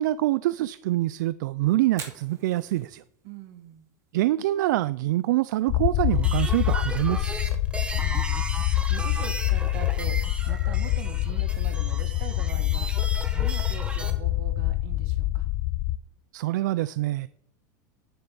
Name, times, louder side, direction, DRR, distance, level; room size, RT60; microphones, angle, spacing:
voice 1, 0.0-3.0 4.1-7.4 16.3-17.3, right 16 dB, 80° right, 17 dB, 0.4 m, -25 dB
Fire, 1.8-15.7, right 5 dB, 30° right, 2.7 m, -53 dB
voice 2, 3.2-3.8 7.8-8.6 8.9-12.9 13.3-15.5, right 9 dB, 60° right, 8 dB, 1.9 m, -42 dB
sound 1, 5.7-16.0, left 16 dB, 50° left, 0.4 m, -26 dB
sound 2, 6.1-14.1, right 2 dB, 10° right, 1.6 m, -36 dB
10.0 x 6.8 x 7.7 m, 0.72 s
supercardioid pair, 130°, 10 cm